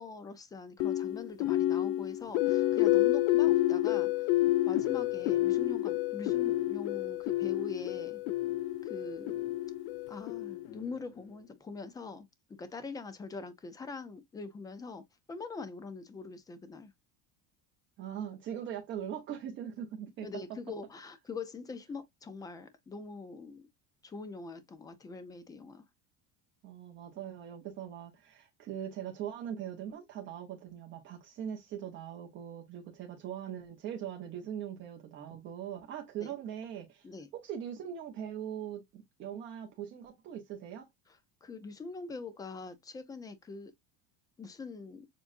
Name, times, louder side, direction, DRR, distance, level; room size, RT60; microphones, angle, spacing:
voice 1, 0.0-4.3 4.7-8.2 8.8-9.5 10.1-15.0 15.3-16.9 20.2-23.7 24.0-25.8 36.2-36.3 37.0-37.3 41.1-43.7 44.4-45.1, left 4 dB, 10° left, 0.6 m, -43 dB
sound 1, 0.8-10.9, left 16 dB, 80° left, 0.7 m, -29 dB
voice 2, 18.0-20.3 26.6-37.1 37.3-40.9, right 9 dB, 35° right, 1.1 m, -41 dB
7.2 x 2.5 x 2.6 m
cardioid pair, 175°, 34 cm